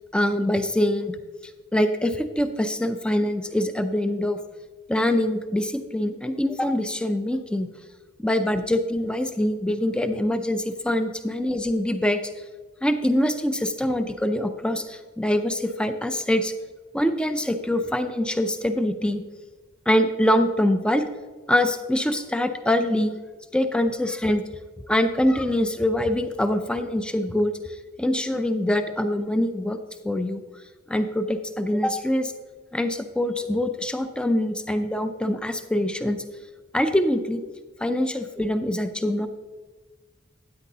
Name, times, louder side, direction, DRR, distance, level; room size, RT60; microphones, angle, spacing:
voice 1, 0.1-1.2 1.7-4.4 4.9-7.7 8.2-12.2 12.8-16.5 16.9-19.2 19.9-21.1 21.5-23.2 23.5-24.4 24.9-27.5 28.0-29.8 30.0-30.4 30.9-32.3 32.7-36.2 36.7-37.4 37.8-39.3, left 1 dB, 5° left, 8 dB, 0.4 m, -24 dB
12.5 x 9.9 x 2.8 m, 1.4 s
head